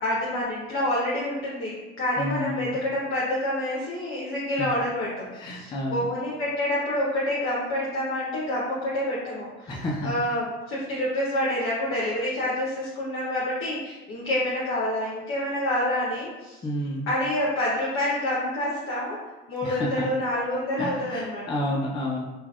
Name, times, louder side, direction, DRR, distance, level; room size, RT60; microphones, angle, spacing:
voice 1, 0.0-16.6 17.1-19.2 19.5-21.6, left 1 dB, 40° left, -6 dB, 0.7 m, -28 dB
voice 2, 2.2-2.8 4.6-4.7 5.3-6.1 9.7-10.1 16.6-17.1 19.6-20.1 20.8-22.2, left 1 dB, 15° left, -2 dB, 0.4 m, -30 dB
3.2 x 2.3 x 2.3 m, 1.2 s
hypercardioid pair, 70°, 33 cm